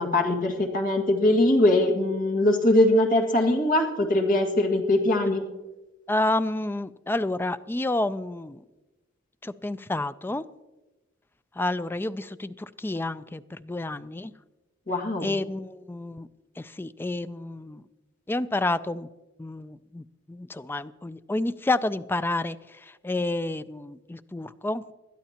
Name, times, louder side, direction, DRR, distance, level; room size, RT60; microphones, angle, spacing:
voice 1, 0.0-5.4 14.9-15.3, left 1 dB, 45° left, 2 dB, 2.0 m, -22 dB
voice 2, 6.1-8.6 9.4-10.4 11.6-14.3 15.2-16.3 16.6-17.8 18.3-19.1 19.4-22.6 23.0-24.9, left 2 dB, 10° left, 14 dB, 0.3 m, -29 dB
21.0 x 12.5 x 2.9 m, 1.1 s
head